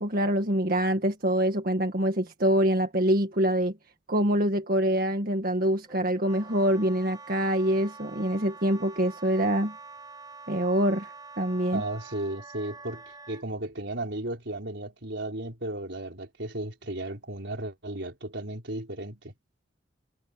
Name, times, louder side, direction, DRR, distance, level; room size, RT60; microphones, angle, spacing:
voice 1, 0.0-3.7 4.1-9.7 10.5-11.8, right 1 dB, 55° right, 1.8 m, -25 dB
Wind instrument woodwind instrument, 5.9-13.4, right 4 dB, 25° right, 4.3 m, -46 dB
voice 2, 11.7-19.3, right 1 dB, 70° right, 5.1 m, -35 dB
head